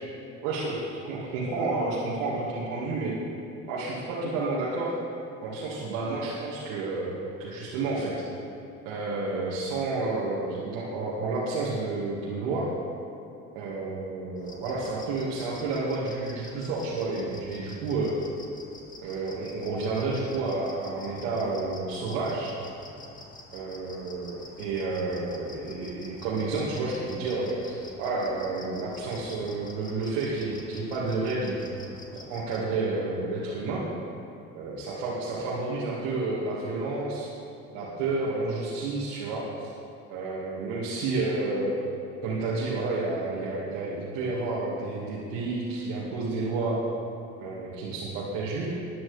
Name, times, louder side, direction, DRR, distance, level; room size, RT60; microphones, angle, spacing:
voice 1, 0.4-3.2 3.7-4.9 5.4-8.1 8.8-12.7 13.5-18.2 19.0-22.5 23.5-31.6 32.1-33.9 34.5-37.3 37.7-39.7 40.1-41.7 42.2-46.8 47.4-48.6, right 3 dB, 70° right, -8 dB, 2.4 m, -30 dB
sound 1, 14.4-32.6, left 2 dB, 20° left, 2.4 m, -48 dB
20.0 x 9.9 x 3.5 m, 2.5 s
hypercardioid pair, 60°, 40 cm